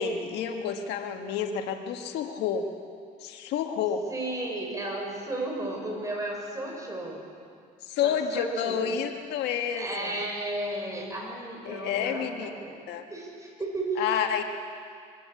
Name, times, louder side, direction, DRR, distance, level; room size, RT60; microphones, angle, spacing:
voice 1, 0.0-2.7 3.2-4.0 7.8-10.1 11.6-12.5 12.9-13.1 14.0-14.4, left 7 dB, 85° left, 5 dB, 1.7 m, -29 dB
voice 2, 4.1-7.2 8.0-8.8 9.7-14.0, right 2 dB, 20° right, 0 dB, 6.5 m, -34 dB
23.5 x 16.5 x 8.4 m, 2.3 s
cardioid pair, 110°, 17 cm